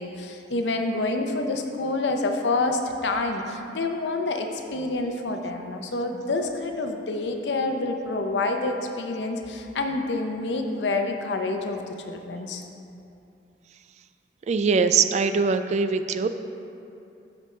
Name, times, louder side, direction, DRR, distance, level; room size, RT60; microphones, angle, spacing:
voice 1, 0.0-12.6, left 2 dB, 85° left, 4 dB, 0.7 m, -28 dB
voice 2, 14.5-16.3, right 5 dB, 40° right, 10 dB, 0.3 m, -22 dB
12.5 x 5.2 x 3.3 m, 2.7 s
head